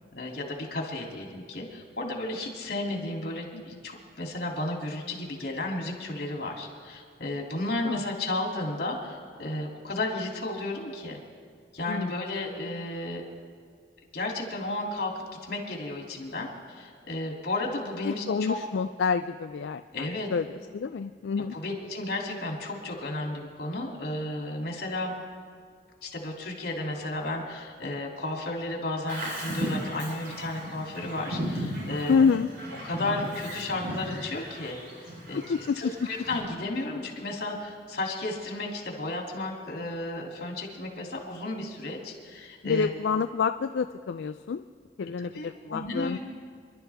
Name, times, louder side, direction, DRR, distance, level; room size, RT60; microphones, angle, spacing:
voice 1, 0.1-11.2 11.7-13.2 14.1-18.6 19.9-20.3 21.5-25.1 26.0-32.2 32.8-35.4 35.7-42.9 45.2-46.2, left 2 dB, 60° left, 0 dB, 2.8 m, -33 dB
voice 2, 11.9-12.3 18.1-21.5 32.1-32.5 35.3-36.1 41.0-41.1 42.6-44.6 45.0-46.2, left 5 dB, 85° left, 9 dB, 0.4 m, -28 dB
Bird vocalization bird call bird song, 29.1-36.4, equal, 65° right, 4.2 m, -36 dB
26.5 x 12.0 x 3.5 m, 2.1 s
head